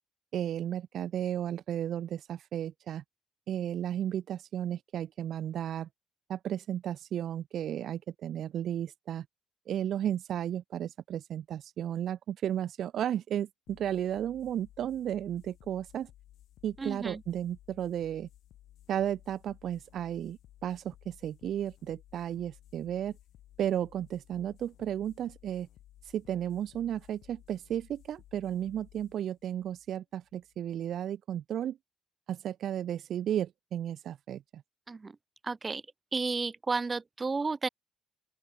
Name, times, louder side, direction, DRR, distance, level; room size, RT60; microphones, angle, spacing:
voice 1, 0.3-3.0 3.5-5.9 6.3-9.2 9.7-16.1 16.6-18.3 18.9-23.2 23.6-25.7 26.0-31.8 32.3-34.6, right 10 dB, 70° right, 1.6 m, -34 dB
sound 1, 13.7-30.7, left 13 dB, 80° left, 2.9 m, -58 dB
voice 2, 16.8-17.2 34.9-35.1 35.4-35.8 36.1-37.7, right 4 dB, 30° right, 0.9 m, -32 dB
open air
cardioid pair, 90°, 0 cm